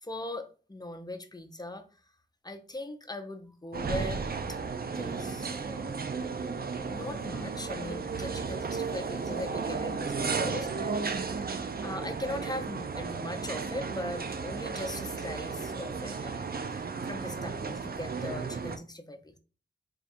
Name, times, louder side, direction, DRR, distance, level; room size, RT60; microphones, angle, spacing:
voice 1, 0.0-1.9 2.4-4.2 4.5-4.6 4.9-5.9 6.8-10.9 11.8-19.4, left 1 dB, 20° left, 7 dB, 0.6 m, -40 dB
sound 1, 3.7-18.8, right 4 dB, 50° right, 0.5 m, -34 dB
3.7 x 2.3 x 4.2 m, 0.37 s
wide cardioid pair, 80°, 20 cm